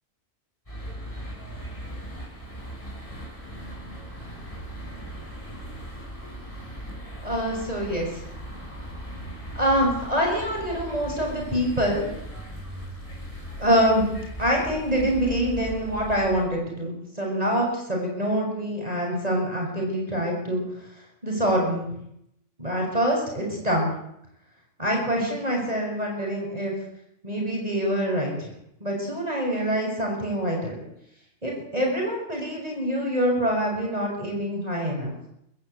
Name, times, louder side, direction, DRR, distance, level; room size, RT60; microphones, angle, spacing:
sound 1, 0.7-16.5, right 1 dB, 20° left, 7.0 m, -38 dB
voice 1, 7.2-8.1 9.5-12.1 13.6-14.1 14.4-20.6 21.2-21.9 22.6-23.9 24.8-26.7 27.2-28.5 28.8-30.8 31.4-35.1, equal, 25° right, -1 dB, 6.7 m, -25 dB
24.5 x 14.0 x 8.2 m, 0.77 s
omnidirectional pair, 1.5 m